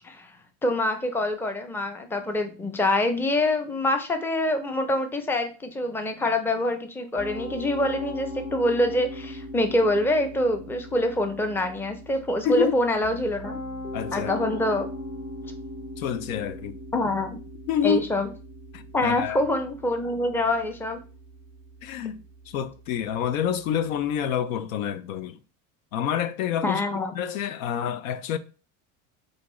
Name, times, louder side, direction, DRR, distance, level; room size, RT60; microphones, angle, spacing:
voice 1, 0.6-13.6 14.1-14.9 16.9-17.4 17.8-18.3 18.9-21.0 26.6-27.1, left 1 dB, 5° left, 0.4 m, -25 dB
Piano, 7.2-24.3, left 1 dB, 40° left, 1.5 m, -39 dB
voice 2, 12.4-12.8 13.9-14.3 16.0-16.8 17.7-18.1 18.7-19.4 21.8-25.4 25.9-26.8 27.1-28.4, left 9 dB, 85° left, 0.6 m, -28 dB
4.5 x 2.7 x 3.0 m
supercardioid pair, 105°, 40 cm